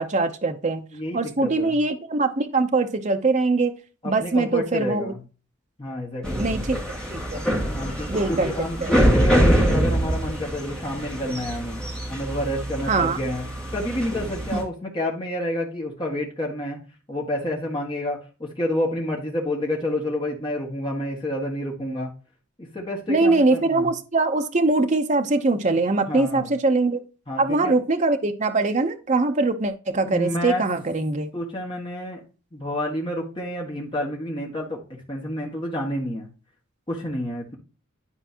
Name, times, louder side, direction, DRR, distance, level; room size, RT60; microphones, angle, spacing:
voice 1, 0.0-0.8 1.1-3.7 4.0-5.1 6.4-7.4 8.1-8.9 12.9-13.2 14.5-14.6 23.1-27.0 27.4-31.3, right 3 dB, 35° right, 6 dB, 0.7 m, -22 dB
voice 2, 0.9-1.8 4.0-5.2 5.8-6.4 7.7-11.8 12.1-13.4 13.7-16.8 17.1-22.1 22.6-23.9 26.1-26.5 27.3-27.7 30.0-30.6 31.3-32.2 32.5-34.8 35.1-36.3 36.9-37.6, left 1 dB, 25° left, -2 dB, 1.7 m, -29 dB
sound 1, 6.2-14.6, equal, 5° left, 2.2 m, -24 dB
11.5 x 4.5 x 2.9 m, 0.35 s
head